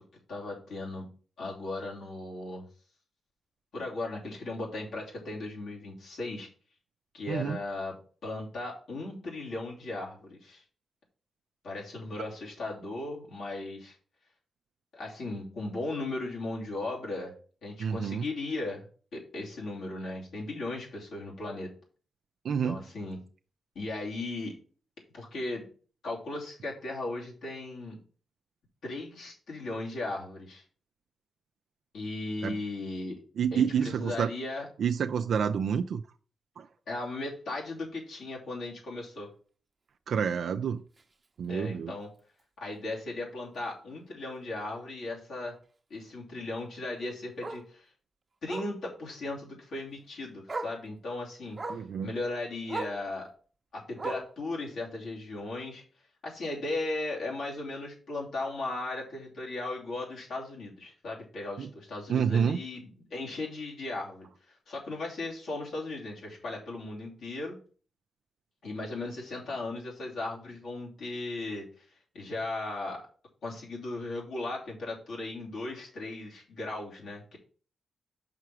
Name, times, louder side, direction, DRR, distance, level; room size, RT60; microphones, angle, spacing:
voice 1, 0.3-1.1 1.4-2.6 3.7-6.5 7.1-8.0 8.2-10.6 11.6-14.0 14.9-17.3 17.6-18.9 19.1-21.7 22.6-23.2 23.7-24.5 25.1-25.6 26.0-28.0 28.8-30.6 31.9-33.2 33.5-34.7 36.9-39.3 41.5-42.1 42.6-45.5 45.9-47.9 48.4-51.6 52.0-53.3 53.7-55.8 56.2-64.3 64.7-67.5 68.6-71.8 72.1-73.0 73.4-77.4, left 2 dB, 80° left, 2.9 m, -37 dB
voice 2, 17.8-18.3 22.4-22.8 32.4-32.6 33.4-34.3 34.8-36.0 36.6-36.7 40.1-40.8 41.4-41.9 51.7-52.1 61.6-61.7 62.1-62.6, right 7 dB, 75° right, 0.4 m, -28 dB
Bark, 41.0-41.1 41.5-41.7 42.0-42.1 42.4-42.5 43.9-44.0 46.5-46.6 47.4-47.7 48.5-48.8 50.0-50.1 50.5-50.8 51.6-51.9 52.7-53.0 54.0-54.4 55.4-55.5, right 3 dB, 35° right, 0.8 m, -37 dB
5.8 x 4.7 x 6.1 m
cardioid pair, 65°, 0 cm